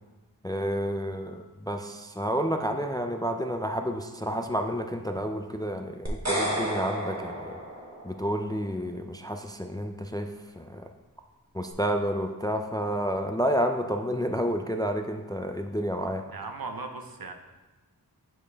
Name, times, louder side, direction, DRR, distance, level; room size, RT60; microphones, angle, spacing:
voice 1, 0.4-7.6 8.0-10.9 11.5-16.2, equal, 10° left, 5 dB, 0.3 m, -30 dB
sound 1, 6.1-8.4, right 1 dB, 40° right, 1.2 m, -32 dB
voice 2, 16.3-17.3, right 3 dB, 60° right, 4 dB, 0.7 m, -37 dB
7.4 x 4.4 x 3.4 m, 1.2 s
wide cardioid pair, 45°, 40 cm